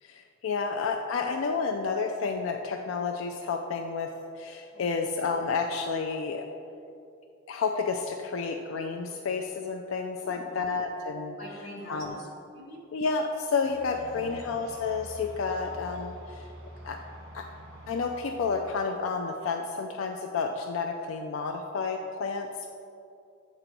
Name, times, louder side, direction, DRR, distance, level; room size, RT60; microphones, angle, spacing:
voice 1, 0.0-6.5 7.5-11.4 11.9-12.1 12.9-16.5 16.8-17.0 17.3-17.5 17.9-22.5, left 4 dB, 90° left, 4 dB, 0.4 m, -30 dB
voice 2, 4.7-5.0 10.2-10.6 11.4-12.3 12.5-12.8 13.9-14.4, left 1 dB, 50° left, -3 dB, 1.6 m, -44 dB
sound 1, 13.6-18.7, right 1 dB, 80° right, 1.5 m, -46 dB
7.7 x 3.9 x 4.5 m, 2.6 s
head